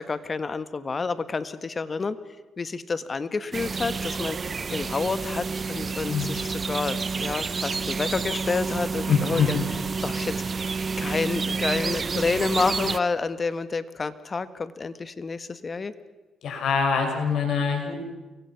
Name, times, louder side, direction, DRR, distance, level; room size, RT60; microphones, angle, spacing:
voice 1, 0.0-2.2 2.6-9.6 10.0-10.6 11.0-15.9, left 4 dB, 35° left, 13 dB, 1.5 m, -29 dB
sound 1, 3.5-13.0, right 4 dB, 35° right, 0.9 m, -29 dB
voice 2, 6.1-6.4 9.1-9.6 16.4-17.9, left 6 dB, 70° left, 3 dB, 6.4 m, -24 dB
29.0 x 23.5 x 5.9 m, 1.1 s
cardioid pair, 90°, 0 cm